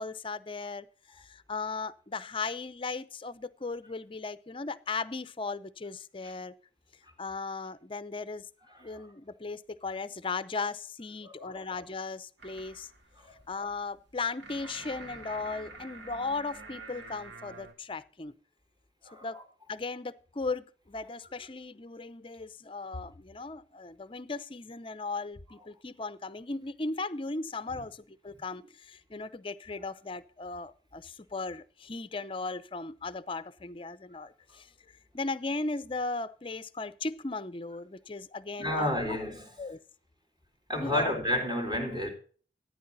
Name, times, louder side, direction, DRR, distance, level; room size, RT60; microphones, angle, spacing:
voice 1, 0.0-6.5 7.2-8.5 8.8-12.9 13.5-18.3 19.2-19.4 19.7-34.7 35.1-39.2 39.6-39.8 40.8-41.1, left 3 dB, 30° left, 0.6 m, -37 dB
voice 2, 11.2-11.6 13.2-13.4 19.0-19.4 27.7-27.8 38.6-39.5 40.7-42.1, left 1 dB, 25° right, 3.9 m, -31 dB
sound 1, 12.4-17.7, right 3 dB, 80° right, 2.4 m, -47 dB
14.5 x 9.4 x 4.0 m
head